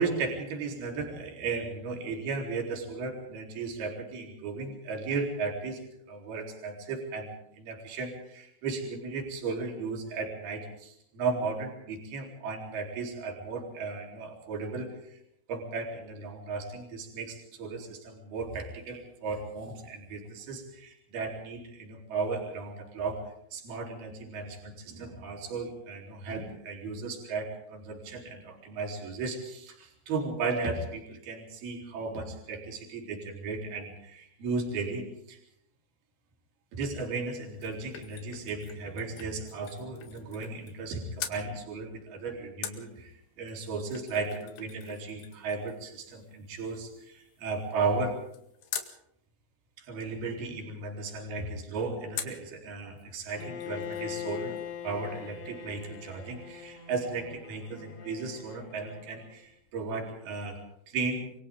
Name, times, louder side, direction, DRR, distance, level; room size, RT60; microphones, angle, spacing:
voice 1, 0.0-15.2 15.5-23.2 23.5-35.4 36.7-48.2 49.8-54.6 54.8-60.6 60.9-61.3, right 4 dB, 65° right, 1 dB, 5.8 m, -35 dB
sound 1, 37.3-40.9 41.2-41.4 42.6-49.0 52.2-52.5 53.0-53.1 53.3-54.3 54.6-54.7, left 9 dB, 80° left, 4.1 m, -44 dB
Bowed string instrument, 53.4-59.4, left 8 dB, 50° left, 2.8 m, -41 dB
30.0 x 24.0 x 3.8 m, 0.74 s
omnidirectional pair, 4.9 m